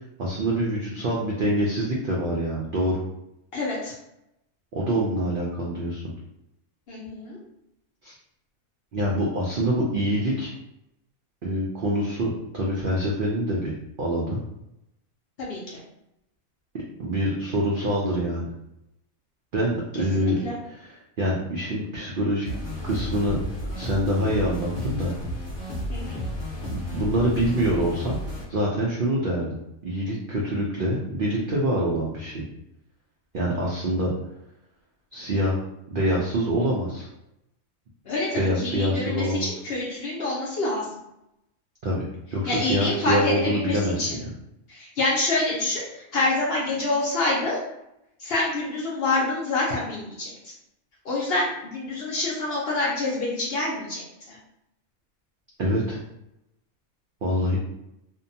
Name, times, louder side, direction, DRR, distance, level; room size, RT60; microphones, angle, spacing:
voice 1, 0.2-3.1 4.7-6.0 8.0-8.1 8.9-10.5 11.4-13.7 14.0-14.4 17.0-18.5 19.5-20.4 20.6-22.5 22.8-23.4 23.8-25.1 26.7-28.2 28.5-32.4 33.3-34.1 35.1-35.6 35.9-37.1 38.4-39.5 41.8-44.3 55.6-56.0 57.2-57.6, equal, 90° right, -4 dB, 0.4 m, -25 dB
voice 2, 3.5-3.9 6.9-7.4 15.4-15.8 20.2-20.6 25.9-26.2 38.1-40.8 42.5-43.3 43.6-44.1 44.7-45.8 46.1-47.6 48.2-50.3 51.1-54.4, left 2 dB, 60° left, -4 dB, 0.7 m, -27 dB
sound 1, 22.4-28.4, equal, 25° left, 1.0 m, -32 dB
2.6 x 2.2 x 2.6 m, 0.84 s
omnidirectional pair, 1.5 m